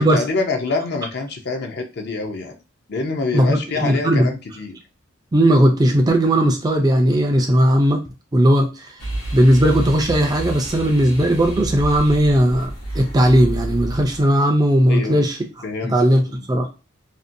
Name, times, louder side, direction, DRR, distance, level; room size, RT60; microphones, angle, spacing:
voice 1, 0.0-2.5 2.9-4.8 14.9-15.2 15.6-16.0 16.3-16.4, left 3 dB, 50° left, 5 dB, 0.5 m, -26 dB
voice 2, 3.3-4.3 5.3-8.0 8.3-8.9 9.3-15.4 15.9-16.2 16.5-16.7, right 1 dB, 20° right, 3 dB, 0.3 m, -17 dB
sound 1, 9.0-14.2, right 1 dB, 90° left, 0.9 m, -29 dB
2.6 x 2.1 x 2.5 m, 0.30 s
head